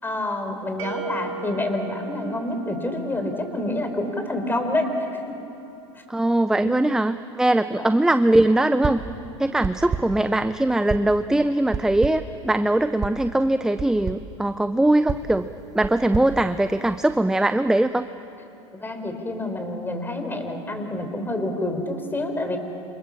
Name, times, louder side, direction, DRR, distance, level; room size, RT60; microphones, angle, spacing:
voice 1, 0.0-5.3 6.6-6.8 7.8-7.9 8.8-9.1 18.8-22.6, left 1 dB, 10° left, 6 dB, 4.7 m, -28 dB
sound 1, 0.8-3.7, right 7 dB, 75° right, 2.4 m, -37 dB
voice 2, 6.1-9.0 9.4-15.5 15.7-18.1, right 1 dB, 5° right, 11 dB, 0.6 m, -21 dB
Guitar Kick, 8.8-9.2 9.6-10.3 10.9-11.3 11.7-12.4 13.0-13.3 13.8-14.3 15.1-17.1, right 6 dB, 20° right, 1.0 m, -31 dB
27.5 x 27.0 x 7.4 m, 2.8 s
hypercardioid pair, 95°, 16 cm